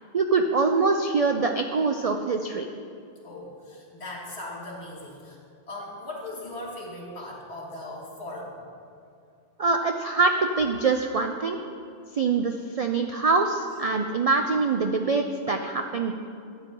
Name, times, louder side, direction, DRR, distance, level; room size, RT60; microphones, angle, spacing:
voice 1, 0.1-2.7 9.6-11.6 12.1-16.1, right 4 dB, 55° right, 5 dB, 0.4 m, -24 dB
voice 2, 3.2-5.4 5.7-8.6, left 1 dB, 70° left, -4 dB, 2.5 m, -38 dB
12.5 x 8.8 x 3.7 m, 2.5 s
omnidirectional pair, 1.2 m